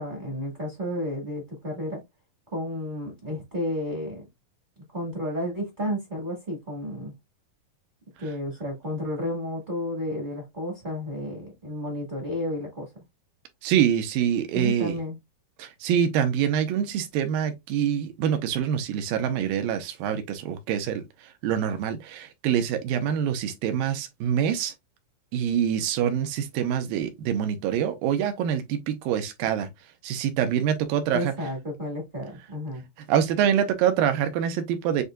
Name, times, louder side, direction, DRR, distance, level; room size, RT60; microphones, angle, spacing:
voice 1, 0.0-2.0 2.5-4.3 4.9-7.1 8.2-12.9 14.5-15.2 31.1-32.8, equal, 35° right, 0.8 m, -32 dB
voice 2, 13.6-15.0 15.6-24.7 25.3-29.7 30.0-31.3 33.1-35.0, right 9 dB, 80° right, 2.5 m, -25 dB
7.9 x 2.7 x 2.4 m
omnidirectional pair, 4.2 m